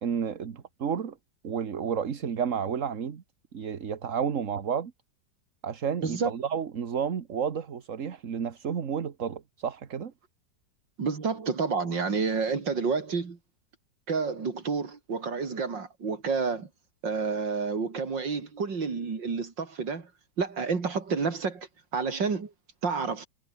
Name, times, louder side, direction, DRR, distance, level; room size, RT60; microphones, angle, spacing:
voice 1, 0.0-1.2 1.4-3.2 3.5-4.9 5.6-10.1, right 7 dB, 45° right, 1.6 m, -31 dB
voice 2, 11.0-13.4 14.1-16.7 17.0-20.1 20.4-21.7 21.9-22.5 22.8-23.3, right 5 dB, 85° right, 3.7 m, -29 dB
omnidirectional pair, 1.9 m